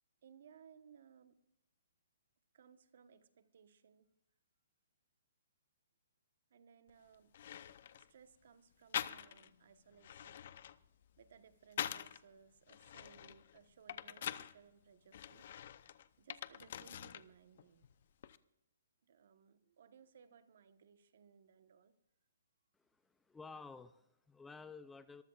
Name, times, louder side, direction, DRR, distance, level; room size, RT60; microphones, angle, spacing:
voice 1, 0.2-1.4 2.5-4.1 6.5-7.4 7.9-10.6 11.2-15.5 16.2-17.9 19.0-21.9, right 7 dB, 55° right, 1.2 m, -63 dB
sound 1, 6.9-7.0 7.3-8.1 8.9-9.6 9.9-12.2 12.7-14.5 15.1-17.3 17.6-18.4, left 10 dB, 45° left, 0.7 m, -45 dB
voice 2, 22.8-25.2, left 4 dB, 5° left, 0.4 m, -53 dB
23.0 x 15.0 x 2.4 m
hypercardioid pair, 165°, 0 cm